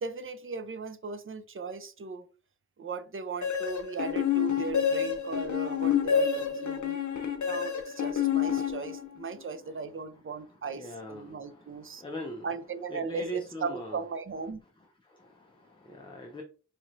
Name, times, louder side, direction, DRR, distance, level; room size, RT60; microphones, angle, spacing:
voice 1, 0.0-2.3 2.8-7.0 7.4-12.0 12.4-14.6, right 4 dB, 45° right, 0.5 m, -37 dB
sound 1, 3.4-9.2, left 8 dB, 75° left, 0.7 m, -28 dB
voice 2, 10.7-12.5 12.9-14.0 15.1-16.4, right 1 dB, 15° left, 0.6 m, -40 dB
4.2 x 3.0 x 2.5 m
wide cardioid pair, 90°, 30 cm